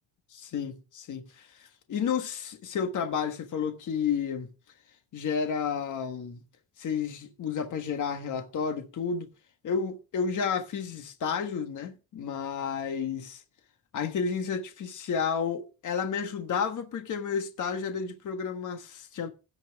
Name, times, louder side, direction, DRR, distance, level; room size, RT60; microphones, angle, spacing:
voice 1, 0.3-1.5 1.9-4.5 5.1-6.4 6.8-9.3 9.6-13.4 13.9-19.3, left 6 dB, 45° left, 1.4 m, -31 dB
16.5 x 5.8 x 3.5 m
cardioid pair, 160°, 41 cm